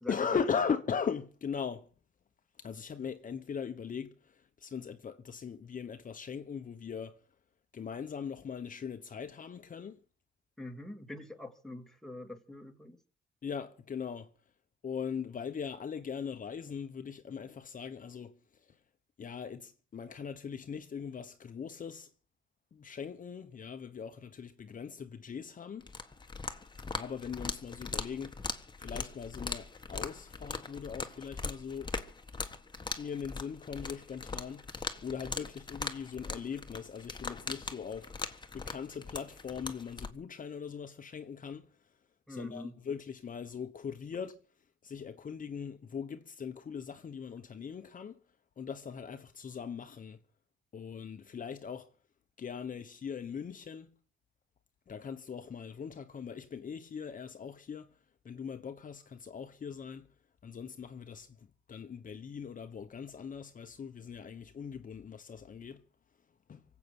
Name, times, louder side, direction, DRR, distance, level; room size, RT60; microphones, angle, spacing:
voice 1, 0.1-1.9 2.6-7.2 7.7-10.0 13.4-14.3 14.8-18.3 19.2-22.1 22.7-25.9 26.9-28.4 28.8-31.9 33.0-34.7 35.0-38.1 38.5-41.7 42.3-44.4 44.8-48.2 48.6-50.2 50.7-51.9 52.4-53.9 54.9-57.9 58.2-60.1 60.4-61.4 61.7-65.8 66.5-66.6, left 6 dB, 40° left, 1.2 m, -40 dB
voice 2, 10.6-13.0 42.3-42.7, left 1 dB, ahead, 2.3 m, -44 dB
sound 1, 25.8-40.1, left 4 dB, 20° left, 1.6 m, -41 dB
24.5 x 8.4 x 6.2 m
cardioid pair, 90°, 20 cm